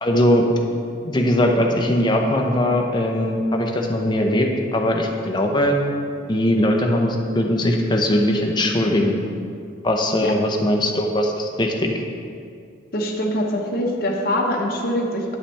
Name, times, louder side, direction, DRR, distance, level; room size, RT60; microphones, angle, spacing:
voice 1, 0.0-0.5 1.0-5.8 6.3-9.2 9.8-12.0, left 1 dB, 25° left, 1 dB, 0.7 m, -20 dB
voice 2, 12.9-15.4, left 1 dB, 55° left, -1 dB, 0.9 m, -23 dB
9.8 x 5.6 x 3.4 m, 2.3 s
head